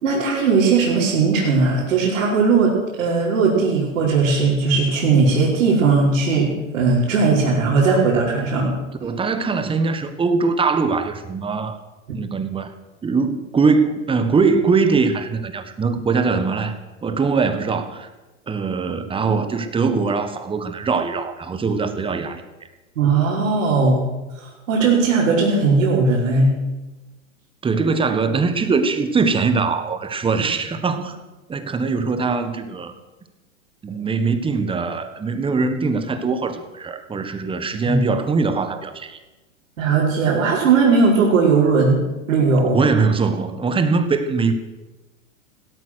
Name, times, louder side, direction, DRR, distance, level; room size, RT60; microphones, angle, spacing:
voice 1, 0.0-2.7 3.0-8.7 23.0-24.0 24.7-26.5 37.9-38.0 39.8-42.0 42.3-42.8, right 4 dB, 80° right, -6 dB, 5.3 m, -18 dB
voice 2, 9.0-11.8 12.1-12.7 13.0-18.1 18.5-22.4 27.6-31.2 31.5-32.9 33.8-39.2 42.7-44.5, right 4 dB, 15° right, 10 dB, 1.4 m, -21 dB
17.0 x 13.0 x 6.3 m, 1.1 s
hypercardioid pair, 125°, 41 cm